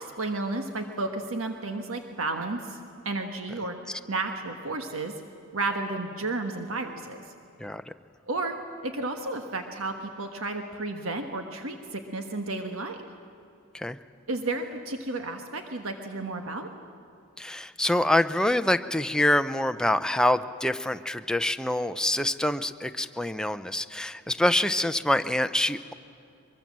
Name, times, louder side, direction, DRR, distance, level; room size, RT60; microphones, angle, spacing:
voice 1, 0.0-2.8 3.0-3.8 4.1-5.1 5.5-7.2 8.3-8.6 8.8-13.0 14.3-16.7, right 2 dB, 75° right, 5 dB, 1.5 m, -32 dB
voice 2, 7.6-7.9 13.7-14.0 17.4-25.9, left 1 dB, 5° left, 9 dB, 0.6 m, -26 dB
23.5 x 22.5 x 7.5 m, 2.6 s
head